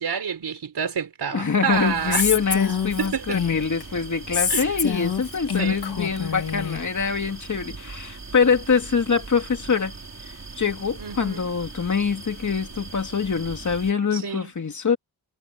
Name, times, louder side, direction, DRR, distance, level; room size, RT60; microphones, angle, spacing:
voice 1, 0.0-2.3 3.0-3.4 4.5-4.8 5.6-5.8 11.0-11.5 14.1-14.5, right 7 dB, 85° right, 5.3 m, -28 dB
voice 2, 1.3-10.0 10.6-15.0, left 5 dB, 50° left, 2.8 m, -24 dB
sound 1, 1.7-13.9, right 4 dB, 45° right, 4.7 m, -40 dB
Female speech woman speaking, 2.1-3.8 4.3-6.8, left 7 dB, 75° left, 2.2 m, -26 dB
wide cardioid pair, 160°, 38 cm